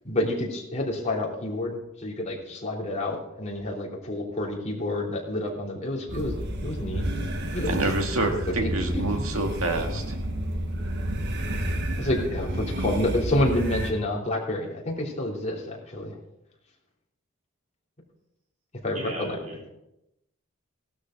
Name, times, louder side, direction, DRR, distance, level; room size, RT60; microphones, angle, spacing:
voice 1, 0.0-6.3 6.6-7.0 7.5-7.7 8.5-8.6 9.1-9.2 12.0-16.2 18.8-19.4, left 1 dB, 35° left, -3 dB, 3.2 m, -29 dB
sound 1, 6.1-13.9, right 1 dB, 55° right, 1.6 m, -30 dB
voice 2, 7.6-10.2, right 2 dB, 75° right, 3 dB, 2.1 m, -27 dB
voice 3, 18.9-19.7, right 1 dB, 40° right, -4 dB, 4.5 m, -37 dB
16.5 x 12.5 x 3.9 m, 0.86 s
head